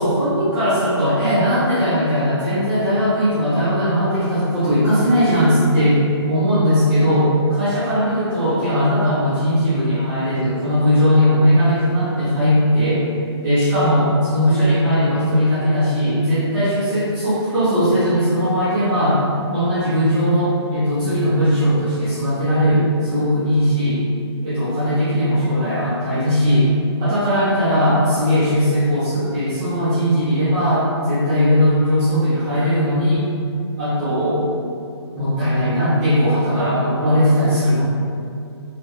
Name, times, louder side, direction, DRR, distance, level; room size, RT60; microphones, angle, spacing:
voice 1, 0.0-6.0 6.3-13.0 13.4-19.2 19.5-24.0 24.4-26.7 27.0-33.2 33.8-34.5 35.1-37.8, equal, 15° right, -16 dB, 1.3 m, -18 dB
3.5 x 3.4 x 3.2 m, 2.3 s
hypercardioid pair, 165°, 15 cm